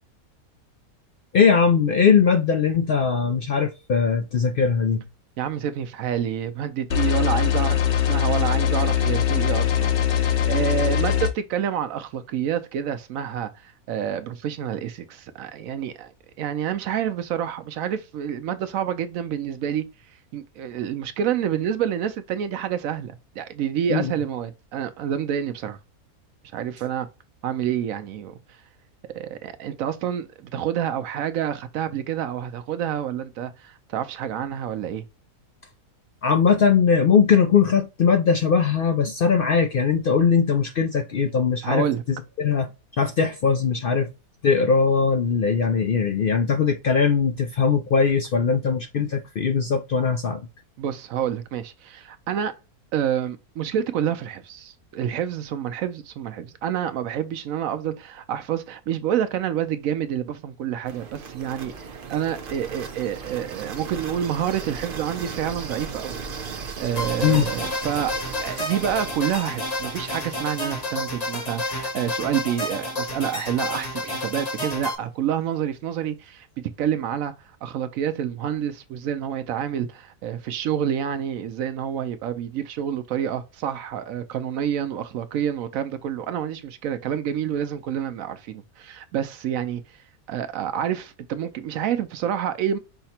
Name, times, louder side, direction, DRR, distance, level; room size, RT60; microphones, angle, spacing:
voice 1, 1.3-5.0 23.9-24.1 36.2-44.1 44.4-50.4 67.2-67.5, left 6 dB, 80° left, 0.5 m, -20 dB
voice 2, 5.4-16.1 16.4-19.8 20.3-25.8 26.5-27.1 27.4-28.4 29.1-35.0 41.6-42.0 50.8-52.5 52.9-66.2 66.4-68.1 68.4-77.3 77.6-90.0 90.3-92.8, right 9 dB, 70° right, 0.9 m, -28 dB
sound 1, 6.9-11.3, left 10 dB, 55° left, 0.9 m, -21 dB
sound 2, 60.8-72.8, right 5 dB, 45° right, 0.8 m, -37 dB
sound 3, 67.0-75.0, left 1 dB, 30° left, 1.0 m, -30 dB
5.7 x 2.1 x 4.2 m
omnidirectional pair, 1.6 m